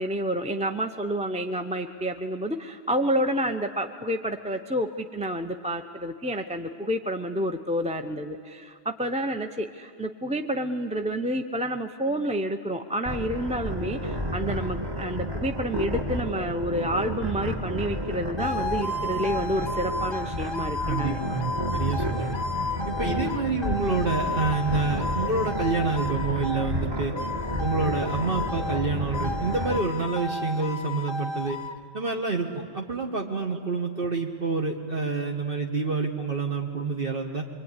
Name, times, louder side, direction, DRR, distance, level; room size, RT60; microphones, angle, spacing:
voice 1, 0.0-21.2 23.0-23.3, right 1 dB, 5° right, 6 dB, 0.7 m, -29 dB
sound 1, 13.1-29.8, equal, 20° right, 1.5 m, -31 dB
sound 2, 18.4-26.7 27.2-28.9 29.1-31.8, left 3 dB, 25° left, 0.9 m, -33 dB
voice 2, 20.9-22.4 22.9-27.1 27.6-31.6 31.9-37.5, right 4 dB, 55° right, 0 dB, 1.6 m, -28 dB
24.5 x 23.0 x 9.9 m, 2.1 s
omnidirectional pair, 1.1 m